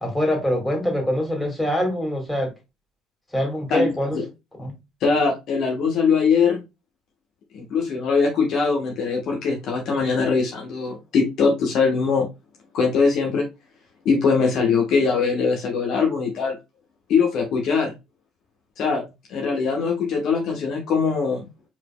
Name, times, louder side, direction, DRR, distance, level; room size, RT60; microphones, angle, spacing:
voice 1, 0.0-2.5 3.3-4.2 4.6-4.7, left 1 dB, 10° left, 2.2 m, -24 dB
voice 2, 3.7-4.2 5.0-6.6 7.5-12.3 12.7-13.5 14.0-16.6 17.1-17.9 18.8-19.0 19.3-21.4, left 5 dB, 55° left, 1.2 m, -21 dB
4.9 x 3.9 x 2.2 m
figure-of-eight pair, 55°, 0 cm